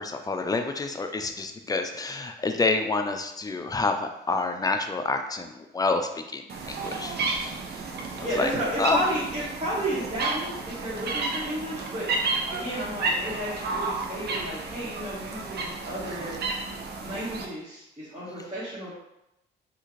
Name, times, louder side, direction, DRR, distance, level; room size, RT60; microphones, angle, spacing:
voice 1, 0.0-7.2 8.4-8.5 8.8-9.0, left 3 dB, 20° left, 6 dB, 0.3 m, -28 dB
sound 1, 6.5-17.4, right 3 dB, 55° right, 0.6 m, -32 dB
voice 2, 8.2-16.3 17.0-18.9, right 1 dB, 25° right, -11 dB, 1.4 m, -32 dB
3.6 x 2.5 x 3.1 m, 0.87 s
cardioid pair, 90°, 20 cm